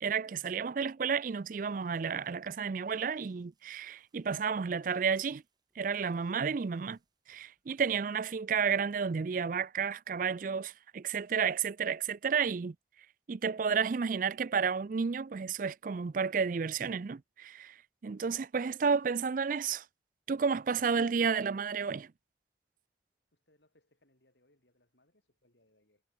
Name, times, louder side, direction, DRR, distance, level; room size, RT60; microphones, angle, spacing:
voice 1, 0.0-5.4 5.8-7.0 7.3-12.7 13.3-17.8 18.0-19.8 20.3-22.1, right 6 dB, 45° right, 0.4 m, -31 dB
sound 1, 1.1-8.2, right 2 dB, 25° right, 6.1 m, -72 dB
voice 2, 23.3-26.0, left 1 dB, 70° left, 6.7 m, -71 dB
head